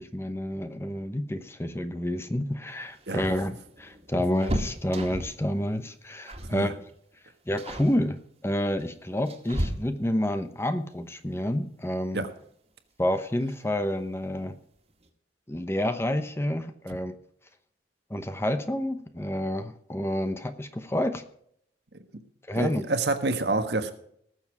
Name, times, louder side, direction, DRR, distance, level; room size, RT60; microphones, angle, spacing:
voice 1, 0.0-6.8 7.5-8.2 8.4-12.2 13.0-14.5 15.5-17.1 18.1-21.2 22.5-22.8, left 1 dB, 15° left, 0.8 m, -29 dB
sound 1, 2.8-5.5 6.3-6.6 6.9-7.2 7.6-8.0 8.8-10.3 12.0-12.1 12.5-12.6 13.7-14.2 14.5-14.6 14.9-15.1, equal, 35° right, 1.9 m, -34 dB
voice 2, 22.5-23.9, right 2 dB, 65° right, 1.5 m, -27 dB
19.0 x 7.2 x 4.8 m
head